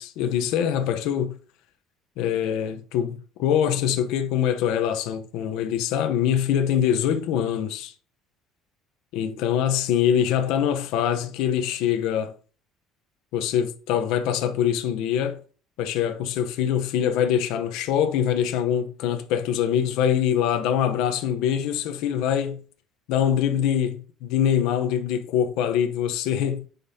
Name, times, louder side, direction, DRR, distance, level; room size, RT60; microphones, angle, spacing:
voice 1, 0.0-1.4 2.2-7.9 9.1-12.3 13.3-15.4 15.8-22.6 23.1-26.6, left 9 dB, 75° left, 0.9 m, -24 dB
9.4 x 5.3 x 2.8 m
cardioid pair, 135°, 0 cm